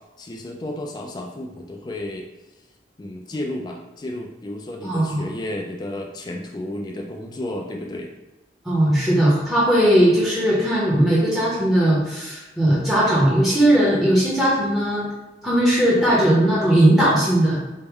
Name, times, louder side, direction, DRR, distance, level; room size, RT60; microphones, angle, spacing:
voice 1, 0.2-2.2 3.0-8.1, left 1 dB, 25° left, 2 dB, 0.3 m, -32 dB
voice 2, 4.8-5.2 8.6-15.1 15.4-17.6, right 1 dB, ahead, -7 dB, 0.7 m, -18 dB
4.4 x 2.1 x 3.5 m, 1.1 s
head